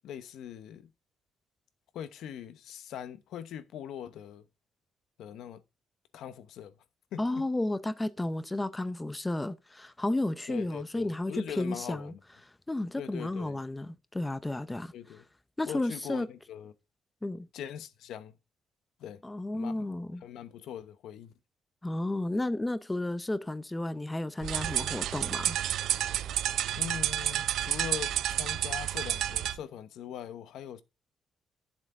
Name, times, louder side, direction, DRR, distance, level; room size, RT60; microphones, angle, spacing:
voice 1, 0.0-0.9 1.9-4.4 5.2-5.6 6.1-6.7 7.1-7.4 10.5-12.2 13.0-13.6 14.9-15.2 15.6-16.7 17.5-18.3 19.0-19.2 19.5-19.9 20.2-21.3 26.8-30.8, left 9 dB, 80° left, 0.9 m, -41 dB
voice 2, 7.2-12.1 12.7-14.9 15.6-16.3 17.2-17.5 19.2-20.2 21.8-25.6, left 2 dB, 10° left, 0.6 m, -32 dB
sound 1, 24.4-29.6, right 12 dB, 75° right, 0.5 m, -30 dB
11.5 x 7.4 x 3.7 m
cardioid pair, 175°, 0 cm